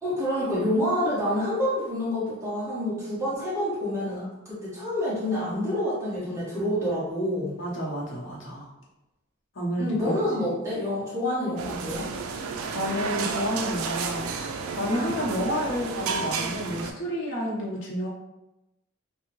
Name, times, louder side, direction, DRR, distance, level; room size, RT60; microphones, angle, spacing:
voice 1, 0.0-7.5 9.8-12.1, left 1 dB, 15° right, -9 dB, 1.0 m, -27 dB
voice 2, 7.6-8.7 9.5-10.5 12.7-18.1, equal, 65° left, -5 dB, 0.8 m, -30 dB
sound 1, 11.6-16.9, right 5 dB, 85° right, 0.3 m, -31 dB
2.6 x 2.1 x 3.0 m, 0.95 s
head